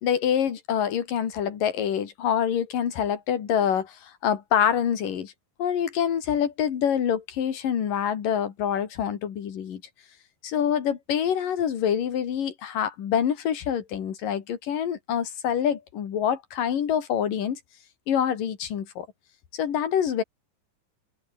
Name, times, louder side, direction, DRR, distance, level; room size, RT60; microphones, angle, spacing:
voice 1, 0.0-5.3 5.6-9.8 10.4-17.6 18.1-19.1 19.5-20.2, left 9 dB, 90° left, 4.1 m, -26 dB
omnidirectional pair, 3.7 m